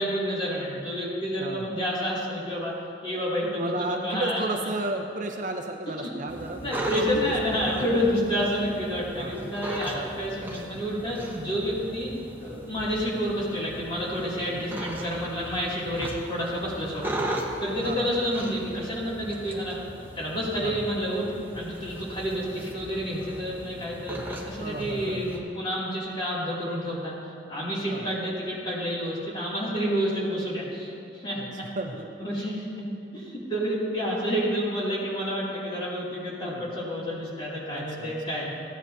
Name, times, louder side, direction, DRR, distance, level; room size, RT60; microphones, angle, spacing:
voice 1, 0.0-2.7 3.0-4.4 6.0-6.1 6.6-17.1 17.6-19.8 20.2-27.1 27.5-31.4 32.2-32.8 33.1-38.5, equal, 25° left, -7 dB, 2.5 m, -29 dB
voice 2, 3.4-7.2 9.2-9.4 9.9-10.2 17.8-18.1 20.6-20.8 24.6-25.3 27.9-28.1 31.3-31.5 31.8-32.1 36.4-36.7 37.7-38.3, right 2 dB, 45° right, 3 dB, 0.6 m, -33 dB
sound 1, 6.3-25.4, right 1 dB, 10° right, 0.9 m, -38 dB
15.0 x 9.7 x 2.7 m, 2.7 s
head